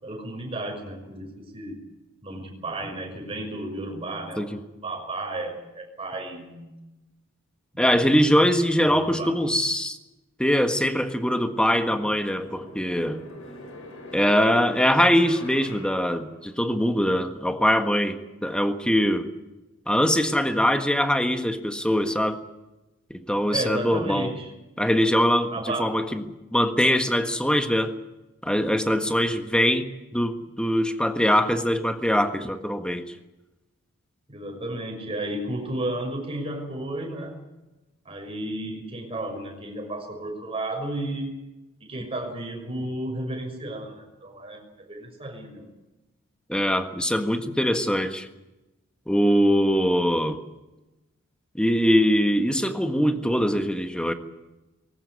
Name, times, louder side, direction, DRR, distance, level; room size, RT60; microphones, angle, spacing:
voice 1, 0.0-1.8 2.2-4.5 4.8-6.8 7.7-8.4 8.8-9.4 23.5-24.5 25.5-26.0 34.3-37.4 38.0-41.4 41.8-45.7, right 1 dB, 25° right, 2 dB, 6.1 m, -33 dB
voice 2, 7.8-10.0 10.4-13.2 14.1-19.3 19.9-22.4 23.1-24.3 24.8-26.2 26.5-27.9 28.4-33.0 46.5-48.3 49.1-50.4 51.5-54.1, equal, 5° left, 7 dB, 1.6 m, -22 dB
sound 1, 11.7-16.9, left 2 dB, 65° left, 6.1 m, -43 dB
20.5 x 18.0 x 9.7 m, 1.0 s
head